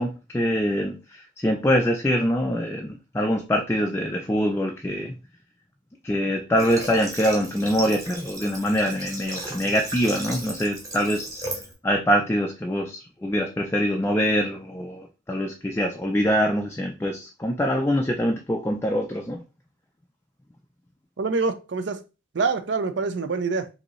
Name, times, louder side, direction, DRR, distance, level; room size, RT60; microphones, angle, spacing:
voice 1, 0.0-5.2 6.0-11.3 11.8-19.4, equal, 15° left, 0.3 m, -24 dB
Water / Water tap faucet, 6.6-11.7, right 1 dB, 15° right, 0.9 m, -36 dB
voice 2, 21.2-22.0 22.3-23.8, right 4 dB, 70° right, 0.5 m, -25 dB
4.9 x 2.7 x 3.1 m
head